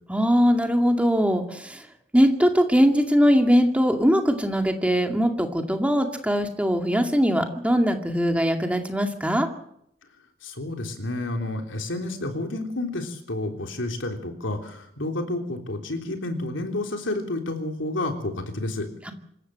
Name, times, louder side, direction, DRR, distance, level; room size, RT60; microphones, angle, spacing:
voice 1, 0.1-1.8 2.1-9.5, equal, 5° right, 4 dB, 2.2 m, -21 dB
voice 2, 10.4-18.9, left 2 dB, 75° left, 4 dB, 3.5 m, -30 dB
26.0 x 15.0 x 7.6 m, 0.74 s
head